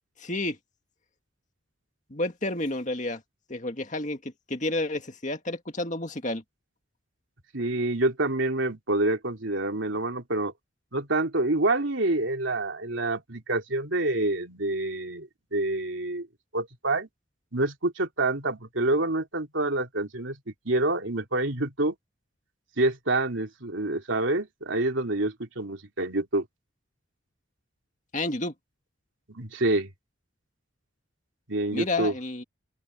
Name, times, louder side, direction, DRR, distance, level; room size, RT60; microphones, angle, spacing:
voice 1, 0.2-0.6 2.1-3.2 3.5-6.4 28.1-28.5 31.7-32.4, left 2 dB, 40° left, 2.1 m, -30 dB
voice 2, 7.5-10.5 10.9-16.3 16.5-17.1 17.5-21.9 22.8-26.5 29.3-29.9 31.5-32.1, right 2 dB, 75° right, 3.0 m, -27 dB
open air
head